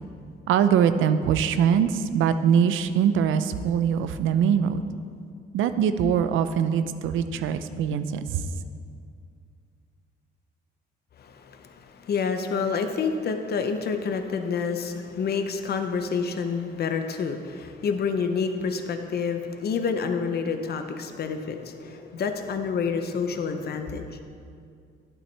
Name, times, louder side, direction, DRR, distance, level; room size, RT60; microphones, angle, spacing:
voice 1, 0.5-4.8 5.5-8.4, right 8 dB, 80° right, 11 dB, 0.5 m, -22 dB
voice 2, 11.2-24.2, left 5 dB, 55° left, 6 dB, 0.8 m, -28 dB
11.5 x 8.6 x 3.3 m, 2.3 s
cardioid pair, 90°, 20 cm